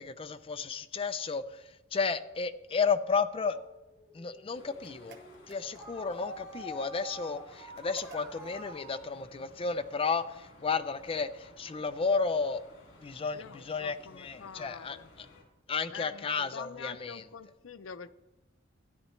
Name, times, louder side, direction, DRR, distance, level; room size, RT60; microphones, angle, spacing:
voice 1, 0.0-3.6 4.1-5.2 5.5-12.6 13.0-15.3 15.7-17.2, left 5 dB, 30° left, 10 dB, 0.4 m, -33 dB
sound 1, 3.4-9.1, equal, 5° right, 3.7 m, -47 dB
sound 2, 4.5-15.4, left 2 dB, 65° left, 2.6 m, -57 dB
sound 3, 4.8-6.1 7.8-8.6, right 3 dB, 60° right, 0.9 m, -52 dB
voice 2, 13.3-15.1 15.9-18.1, left 6 dB, 90° left, 13 dB, 0.5 m, -46 dB
13.0 x 10.0 x 3.2 m, 1.0 s
head